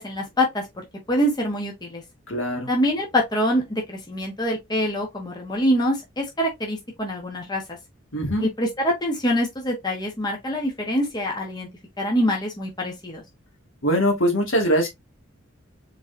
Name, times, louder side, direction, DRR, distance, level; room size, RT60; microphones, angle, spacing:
voice 1, 0.0-2.0 2.7-7.8 8.4-11.7 12.0-13.2, equal, 20° left, 1.2 m, -25 dB
voice 2, 2.3-2.7 8.1-8.5 13.8-14.9, equal, 75° left, 2.1 m, -22 dB
4.6 x 4.0 x 2.7 m
head